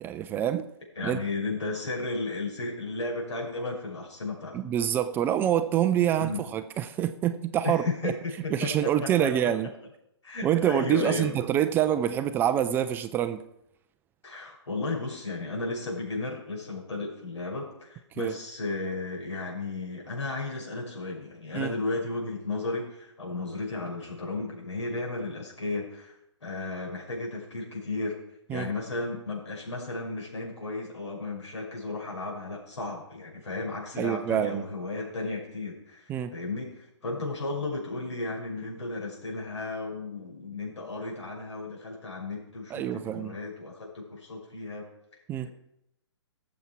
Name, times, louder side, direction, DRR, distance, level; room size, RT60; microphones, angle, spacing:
voice 1, 0.0-0.7 1.0-1.2 4.5-8.1 8.5-9.7 10.4-13.4 18.2-18.3 21.5-21.7 28.5-28.7 34.0-34.6 36.1-36.3 42.7-43.3 45.3-45.5, right 10 dB, 15° right, 10 dB, 0.4 m, -26 dB
voice 2, 1.0-4.6 6.2-6.4 7.6-9.3 10.2-11.3 14.2-28.2 28.5-45.5, left 3 dB, 70° left, -1 dB, 5.9 m, -34 dB
17.5 x 7.3 x 4.6 m, 0.81 s
figure-of-eight pair, 135°, 15 cm